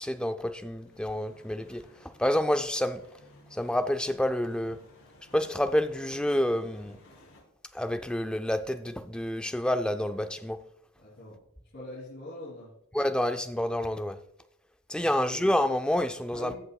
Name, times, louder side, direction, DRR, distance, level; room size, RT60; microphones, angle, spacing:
voice 1, 0.0-1.8 2.2-3.0 3.5-4.8 5.3-7.0 7.7-10.6 12.9-14.2 14.9-16.6, left 1 dB, 5° left, 8 dB, 0.4 m, -28 dB
sound 1, 0.6-7.4, left 1 dB, 75° left, 3.1 m, -57 dB
voice 2, 11.0-11.4 11.7-12.7 14.9-15.1 16.3-16.6, left 1 dB, 50° left, -9 dB, 3.3 m, -43 dB
16.0 x 5.8 x 2.3 m, 0.77 s
head